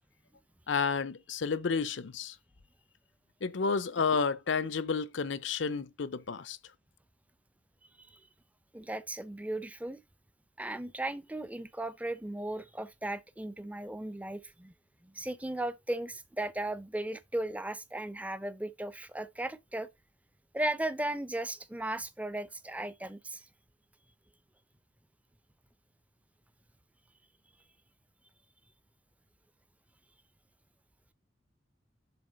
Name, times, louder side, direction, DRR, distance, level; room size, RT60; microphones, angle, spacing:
voice 1, 0.7-2.3 3.4-6.6, left 5 dB, 70° left, 0.6 m, -31 dB
voice 2, 8.7-10.0 10.6-14.7 15.0-19.9 20.5-23.5, right 1 dB, 10° right, 0.5 m, -36 dB
7.0 x 3.7 x 5.2 m
head